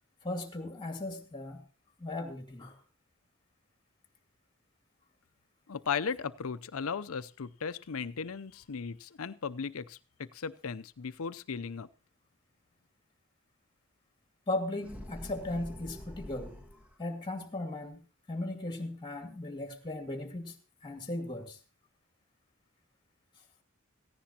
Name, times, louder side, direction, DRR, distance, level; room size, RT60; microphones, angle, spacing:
voice 1, 0.2-1.6 2.0-2.8 14.5-16.6 17.0-21.6, left 2 dB, 20° left, 4 dB, 2.3 m, -37 dB
voice 2, 5.7-11.9, left 6 dB, 75° left, 14 dB, 0.6 m, -36 dB
sound 1, 14.8-17.0, equal, 10° right, 1.4 m, -45 dB
16.5 x 15.5 x 2.9 m, 0.33 s
head